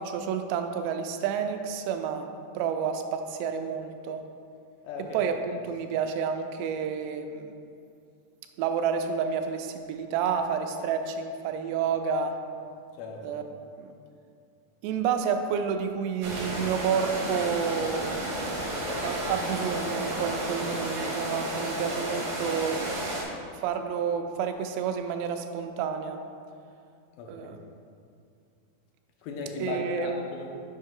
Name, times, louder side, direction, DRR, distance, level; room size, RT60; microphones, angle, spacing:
voice 1, 0.0-2.3 2.5-4.2 5.1-7.5 8.6-12.4 13.2-13.4 13.8-13.9 14.8-18.2 19.0-22.8 23.6-26.2 27.3-27.6 29.6-30.2, right 7 dB, 85° right, 6 dB, 2.7 m, -30 dB
voice 2, 4.8-5.2 13.0-13.3 27.2-27.5 29.2-30.5, left 3 dB, 80° left, 0 dB, 2.1 m, -35 dB
sound 1, 16.2-23.2, right 1 dB, 70° right, 1.4 m, -32 dB
8.0 x 5.3 x 3.7 m, 2.4 s
omnidirectional pair, 4.8 m